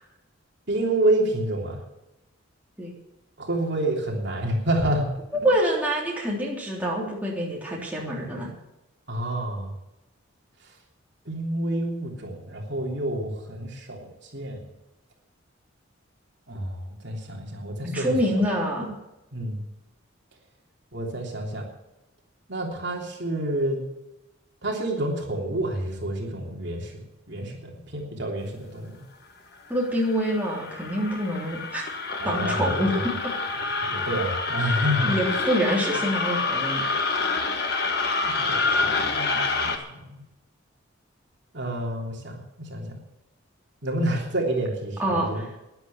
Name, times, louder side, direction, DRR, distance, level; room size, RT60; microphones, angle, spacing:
voice 1, 0.7-1.8 3.4-5.1 9.1-9.7 11.2-14.6 16.5-18.2 19.3-19.6 20.9-21.6 22.5-23.8 24.6-29.0 32.2-33.0 33.8-35.2 38.3-40.2 41.5-43.0 43.8-45.6, right 1 dB, 55° right, -1 dB, 3.3 m, -29 dB
voice 2, 5.4-8.5 17.8-18.9 29.7-31.8 32.2-33.1 35.0-36.8 45.0-45.6, equal, 10° right, -4 dB, 3.4 m, -26 dB
sound 1, 29.8-39.8, left 4 dB, 50° left, 1.6 m, -27 dB
12.5 x 11.0 x 7.3 m, 0.95 s
head